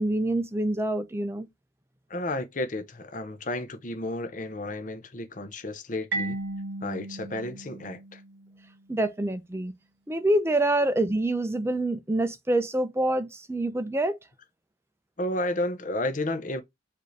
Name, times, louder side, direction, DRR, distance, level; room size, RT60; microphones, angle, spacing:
voice 1, 0.0-1.5 8.9-9.7 10.1-14.2, right 1 dB, 15° right, 0.5 m, -26 dB
voice 2, 2.1-6.4 6.8-8.2 15.2-16.6, left 1 dB, 40° left, 0.7 m, -32 dB
Marimba xylophone, 6.1-8.8, right 2 dB, 60° right, 1.6 m, -35 dB
4.9 x 2.7 x 3.2 m
head